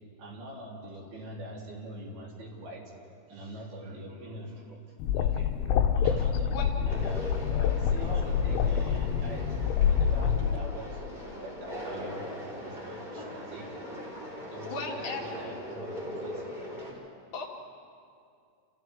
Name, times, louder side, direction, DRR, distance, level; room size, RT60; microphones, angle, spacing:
voice 1, 0.2-2.9 3.3-4.8 5.1-5.5 5.9-9.5 9.9-11.0 11.4-12.3 12.6-13.7 14.5-16.4, right 1 dB, 55° right, -4 dB, 5.2 m, -43 dB
sound 1, 5.0-10.6, left 8 dB, 90° left, 3.3 m, -26 dB
Conversation, 6.9-16.9, equal, 10° right, 4.2 m, -40 dB
voice 2, 14.6-15.2 17.3-17.5, left 4 dB, 70° left, -3 dB, 4.5 m, -35 dB
29.5 x 29.5 x 3.6 m, 2.3 s
omnidirectional pair, 5.4 m